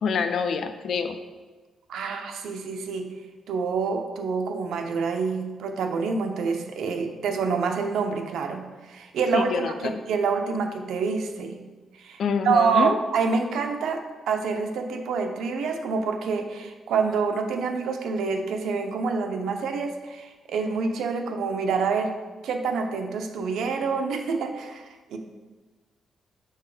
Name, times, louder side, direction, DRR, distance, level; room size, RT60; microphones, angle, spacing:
voice 1, 0.0-1.2 9.3-10.0 12.2-13.0, left 5 dB, 55° left, 8 dB, 0.5 m, -26 dB
voice 2, 1.9-3.1 3.5-11.6 12.0-12.2 12.4-22.1 22.4-25.2, right 5 dB, 80° right, 4 dB, 0.7 m, -27 dB
6.7 x 4.5 x 4.9 m, 1.3 s
cardioid pair, 140°, 0 cm